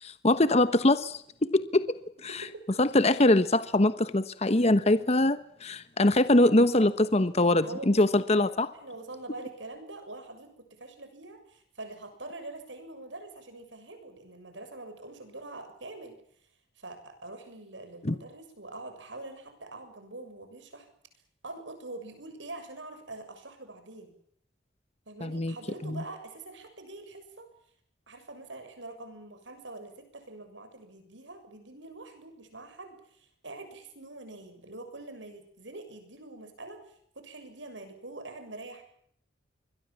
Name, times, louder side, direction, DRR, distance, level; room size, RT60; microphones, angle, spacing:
voice 1, 0.0-1.9 2.2-2.5 2.8-8.7 18.0-18.2 25.2-25.5 25.8-26.0, left 1 dB, 35° left, 13 dB, 1.1 m, -23 dB
voice 2, 7.6-8.5 8.8-16.2 16.8-20.9 21.4-24.1 25.1-27.5 28.1-38.8, right 2 dB, 80° right, 8 dB, 7.1 m, -44 dB
26.5 x 22.5 x 7.3 m, 0.68 s
head